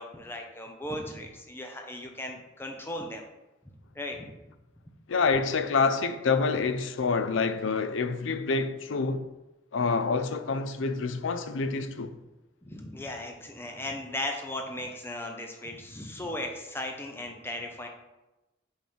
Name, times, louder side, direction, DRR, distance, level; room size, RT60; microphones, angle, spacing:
voice 1, 0.0-3.2 3.6-4.3 12.6-17.9, left 1 dB, 10° left, 0.7 m, -37 dB
voice 2, 5.1-9.3 9.7-12.2, left 4 dB, 75° left, 0.5 m, -27 dB
5.9 x 5.5 x 4.6 m
head